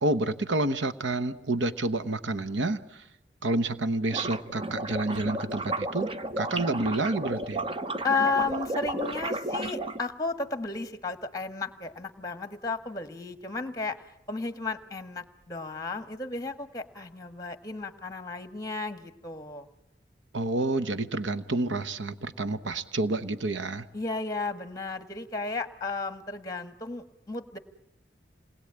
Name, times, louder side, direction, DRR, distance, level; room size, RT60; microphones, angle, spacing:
voice 1, 0.0-3.0 3.4-6.1 6.4-7.6 20.3-23.9, right 2 dB, 85° right, 12 dB, 1.0 m, -29 dB
sound 1, 4.1-10.0, right 2 dB, 30° right, 0.9 m, -33 dB
voice 2, 8.0-14.0 14.3-19.7 23.9-27.6, left 3 dB, 20° left, 9 dB, 1.5 m, -33 dB
28.0 x 20.5 x 8.7 m, 0.90 s
head